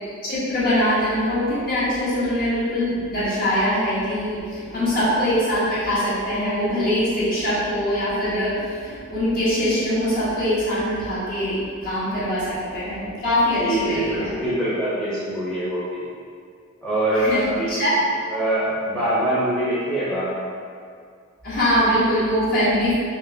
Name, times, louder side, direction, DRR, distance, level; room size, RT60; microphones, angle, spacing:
voice 1, 0.0-14.3 17.2-17.4 17.7-17.9 21.4-22.9, equal, 45° left, -10 dB, 1.2 m, -23 dB
voice 2, 13.6-16.1 16.8-17.9 18.3-20.5, right 1 dB, 5° left, -12 dB, 0.8 m, -24 dB
3.7 x 3.0 x 2.7 m, 2.2 s
head